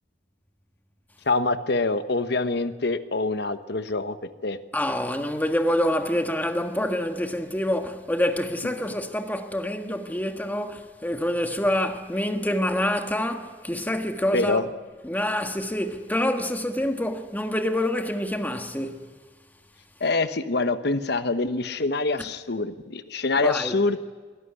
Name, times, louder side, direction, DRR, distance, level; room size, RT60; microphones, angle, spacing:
voice 1, 1.3-4.2 4.4-4.6 14.3-14.7 20.0-24.0, left 3 dB, 65° left, 1.1 m, -25 dB
voice 2, 4.7-14.6 15.0-19.1 23.4-23.8, left 1 dB, 10° left, 1.5 m, -26 dB
23.0 x 13.5 x 9.8 m
head